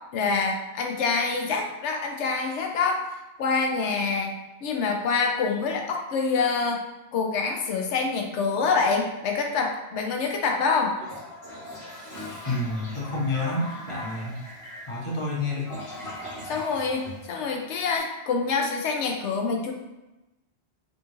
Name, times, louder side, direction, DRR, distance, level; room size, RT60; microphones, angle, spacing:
voice 1, 0.1-3.0 3.4-4.3 4.6-6.8 7.1-11.0 16.5-19.7, left 4 dB, 80° left, 2 dB, 1.0 m, -26 dB
Toilet flush, 10.9-17.9, left 1 dB, 50° left, 1.6 m, -40 dB
voice 2, 12.5-14.4 14.9-15.7, left 2 dB, 30° left, -3 dB, 0.8 m, -29 dB
5.2 x 2.4 x 3.0 m, 1.0 s
omnidirectional pair, 1.2 m